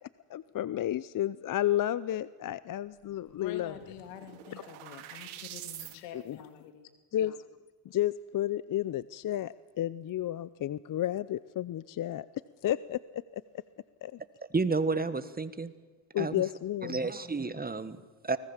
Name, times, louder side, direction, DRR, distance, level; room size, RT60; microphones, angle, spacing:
voice 1, 0.0-3.8 6.1-6.4 7.1-7.5 7.8-12.3 12.6-13.4 14.0-14.2 16.1-17.0, left 12 dB, 40° left, 17 dB, 0.6 m, -32 dB
sound 1, 3.1-3.2 3.4-6.0, right 12 dB, 80° right, 2.9 m, -46 dB
voice 2, 3.4-6.9, left 9 dB, 90° left, 7 dB, 2.7 m, -46 dB
voice 3, 14.5-15.7 16.2-16.4 16.8-18.4, right 3 dB, 20° right, 13 dB, 1.5 m, -31 dB
24.5 x 19.0 x 7.3 m, 1.5 s
supercardioid pair, 80°, 49 cm